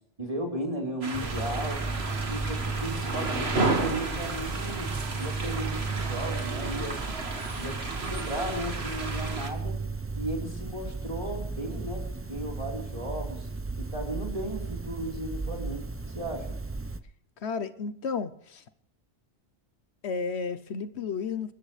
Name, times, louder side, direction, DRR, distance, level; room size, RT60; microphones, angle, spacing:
voice 1, 0.2-1.9 2.3-7.1 7.6-7.8 8.1-9.8 10.1-13.5 13.8-15.9 16.1-16.6, right 1 dB, 30° right, 4.1 m, -35 dB
sound 1, 1.0-9.5, right 3 dB, 65° right, 2.1 m, -32 dB
sound 2, 1.1-17.0, right 3 dB, 15° right, 0.6 m, -35 dB
voice 2, 17.4-18.6 20.0-21.5, left 5 dB, 70° left, 1.1 m, -32 dB
28.0 x 13.5 x 3.3 m
omnidirectional pair, 1.2 m